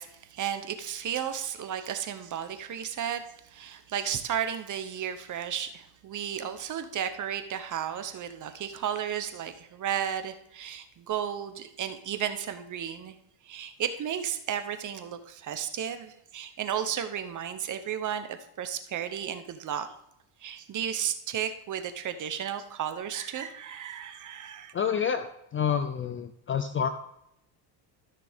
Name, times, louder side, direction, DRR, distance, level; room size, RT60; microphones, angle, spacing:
voice 1, 0.0-13.2 13.4-19.9 20.4-24.7, right 9 dB, 40° right, 9 dB, 0.9 m, -33 dB
voice 2, 24.7-26.9, left 7 dB, 30° left, 9 dB, 0.4 m, -28 dB
13.0 x 6.0 x 3.5 m, 0.78 s
cardioid pair, 135°, 48 cm